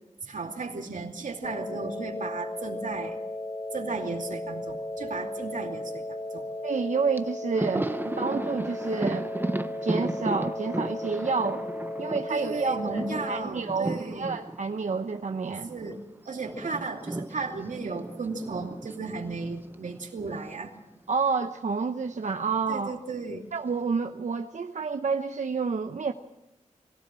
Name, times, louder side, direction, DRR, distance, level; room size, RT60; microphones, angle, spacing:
voice 1, 0.2-3.2 3.7-6.0 6.3-6.5 12.3-14.3 15.7-16.0 16.3-20.7 22.7-23.4, right 4 dB, 90° right, 1 dB, 2.6 m, -34 dB
sound 1, 1.4-13.4, left 1 dB, 35° left, 1.4 m, -35 dB
voice 2, 6.6-9.3 9.8-11.6 12.0-15.7 21.1-22.9 23.5-26.1, right 5 dB, 70° right, 5 dB, 0.9 m, -29 dB
Thunder, 6.8-6.9 7.2-16.0 16.2-20.6 20.8-21.0 22.1-22.8, right 1 dB, 15° right, 0.7 m, -35 dB
22.5 x 17.0 x 7.6 m, 0.92 s
wide cardioid pair, 100°, 13 cm